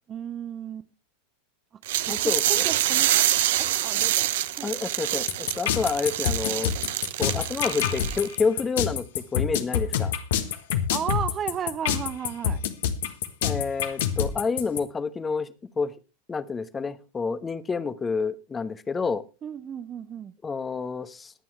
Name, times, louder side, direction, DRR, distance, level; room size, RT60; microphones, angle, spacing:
voice 1, 0.1-0.9 1.7-1.8 2.1-3.1 3.6-4.2 4.6-4.7 10.9-12.6 19.4-20.3, right 8 dB, 25° right, 0.8 m, -34 dB
sound 1, 1.9-8.4, right 13 dB, 55° right, 0.9 m, -26 dB
voice 2, 2.1-2.6 4.6-6.7 7.2-9.1 9.3-10.1 13.4-15.5 15.8-15.9 16.3-19.2 20.4-21.3, left 4 dB, 15° left, 1.1 m, -28 dB
sound 2, 5.3-14.8, left 9 dB, 55° left, 1.4 m, -26 dB
21.5 x 9.1 x 3.3 m
figure-of-eight pair, 90°, 0 cm